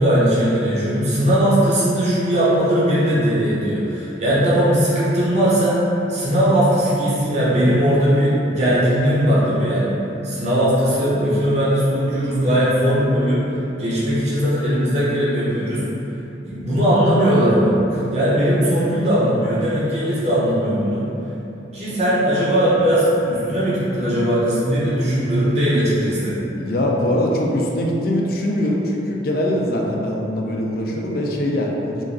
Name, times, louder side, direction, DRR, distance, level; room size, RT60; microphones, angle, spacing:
voice 1, 0.0-5.8 6.1-10.0 10.2-13.4 13.8-15.9 16.4-21.0 21.7-26.4, equal, 35° right, -10 dB, 0.7 m, -19 dB
voice 2, 26.6-32.0, left 1 dB, 50° left, -1 dB, 0.4 m, -22 dB
3.0 x 2.5 x 3.7 m, 2.9 s
head